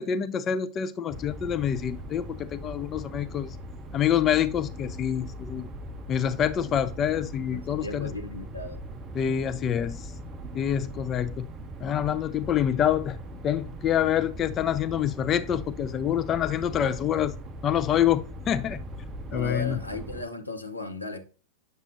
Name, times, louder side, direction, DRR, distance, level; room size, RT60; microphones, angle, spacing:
voice 1, 0.0-3.6 3.9-5.7 6.1-8.1 9.2-10.1 10.5-11.5 11.8-13.2 13.4-17.3 17.6-18.8 19.3-19.8, left 9 dB, 30° left, 0.3 m, -26 dB
sound 1, 1.1-20.2, right 1 dB, 25° right, 0.5 m, -40 dB
voice 2, 7.5-8.8 19.3-21.2, left 3 dB, 85° left, 0.8 m, -36 dB
7.9 x 6.6 x 2.5 m
figure-of-eight pair, 90°, 0 cm